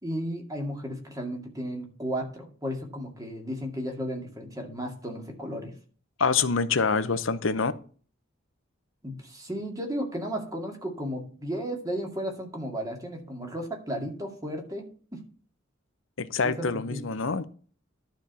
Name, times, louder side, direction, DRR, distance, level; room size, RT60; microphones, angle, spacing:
voice 1, 0.0-5.7 9.0-14.9 15.1-15.2 16.4-17.1, equal, 20° right, 2 dB, 2.2 m, -34 dB
voice 2, 6.2-7.7 16.2-17.5, left 5 dB, 70° left, 13 dB, 0.8 m, -26 dB
11.5 x 4.5 x 6.8 m, 0.42 s
head